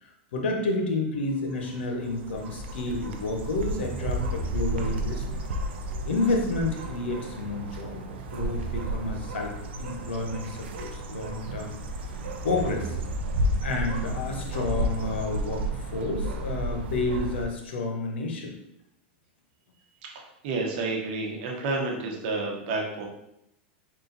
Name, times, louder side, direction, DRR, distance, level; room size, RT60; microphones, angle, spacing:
voice 1, 0.0-5.4 6.0-8.1 8.3-9.5 9.8-11.8 12.1-13.0 13.6-18.5, left 2 dB, 90° left, 2 dB, 0.9 m, -30 dB
sound 1, 1.3-17.4, right 1 dB, 85° right, 0.5 m, -32 dB
sound 2, 3.7-5.3 8.5-9.6 12.4-13.7, right 5 dB, 25° right, 1.0 m, -41 dB
voice 2, 20.1-23.1, right 3 dB, 60° right, 0 dB, 1.1 m, -30 dB
3.8 x 2.4 x 3.9 m, 0.81 s
supercardioid pair, 130°, 6 cm